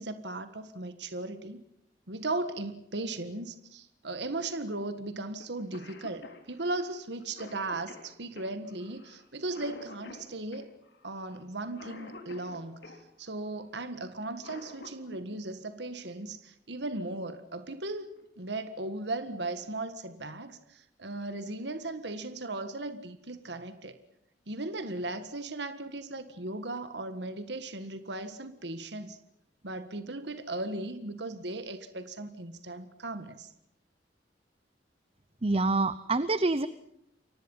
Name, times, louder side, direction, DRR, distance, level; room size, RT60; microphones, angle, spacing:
voice 1, 0.0-1.6 2.1-10.7 11.0-18.1 18.4-24.0 24.5-29.2 29.6-33.5, right 2 dB, 70° right, 10 dB, 1.7 m, -37 dB
Cough, 5.4-5.5 5.7-13.0 14.2-15.2 16.8-16.9 18.0-18.2 18.7-18.8 19.2-19.7, left 2 dB, 70° left, 4.1 m, -49 dB
voice 2, 35.4-36.7, right 3 dB, 35° right, 14 dB, 0.8 m, -26 dB
29.5 x 24.0 x 5.6 m, 0.75 s
head